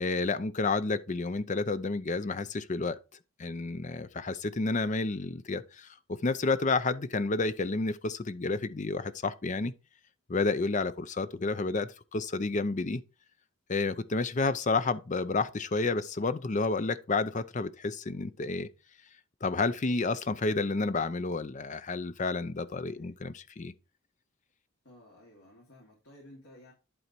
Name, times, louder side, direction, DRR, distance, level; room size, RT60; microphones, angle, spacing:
voice 1, 0.0-3.0 3.4-9.7 10.3-13.0 13.7-18.7 19.4-23.7, left 3 dB, 35° left, 0.5 m, -30 dB
voice 2, 19.8-20.2 22.8-23.2 24.8-26.7, left 1 dB, 75° left, 2.9 m, -55 dB
11.0 x 3.9 x 4.4 m
head